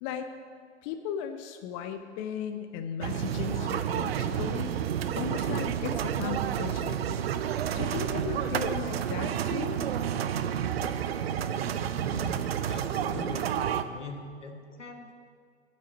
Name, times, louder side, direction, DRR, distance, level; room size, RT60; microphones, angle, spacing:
voice 1, 0.8-4.8 5.2-7.2 7.7-9.8, left 8 dB, 30° left, 8 dB, 0.5 m, -36 dB
sound 1, 3.0-13.8, right 9 dB, 55° right, 0.6 m, -30 dB
voice 2, 12.1-13.4 13.8-15.1, left 3 dB, 80° left, 4 dB, 1.5 m, -42 dB
9.3 x 6.3 x 8.0 m, 2.1 s
figure-of-eight pair, 100°, 36 cm